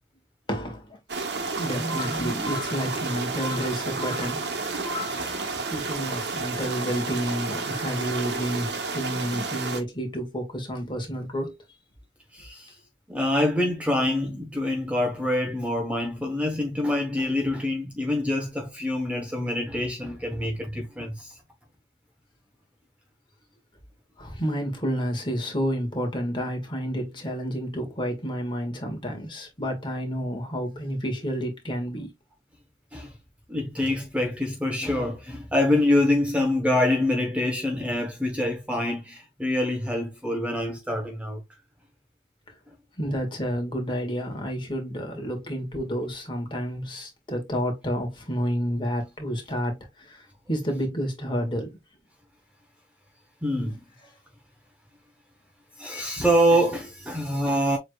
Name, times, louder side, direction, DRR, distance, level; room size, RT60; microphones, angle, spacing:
voice 1, 0.5-1.0 1.6-11.6 24.2-32.1 43.0-51.7, equal, 25° left, 1.6 m, -30 dB
sound 1, 1.1-9.8, right 3 dB, 70° right, 1.2 m, -31 dB
voice 2, 12.3-12.7 13.1-21.3 32.9-33.1 33.5-41.4 53.4-53.8 55.8-57.8, left 1 dB, 5° right, 0.8 m, -25 dB
7.1 x 3.2 x 2.3 m
head